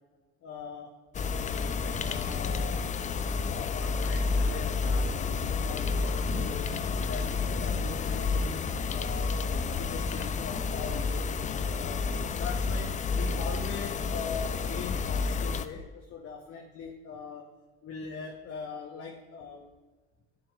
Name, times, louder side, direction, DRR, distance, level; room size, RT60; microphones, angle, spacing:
voice 1, 0.4-0.9 1.2-2.8 3.2-6.7 7.0-8.6 8.9-9.4 9.8-11.3 11.8-17.5 17.8-19.6, left 5 dB, 40° left, 1 dB, 1.0 m, -41 dB
sound 1, 1.1-15.7, left 4 dB, 20° left, 0.4 m, -30 dB
10.5 x 7.2 x 2.4 m, 1.3 s
hypercardioid pair, 60°, 35 cm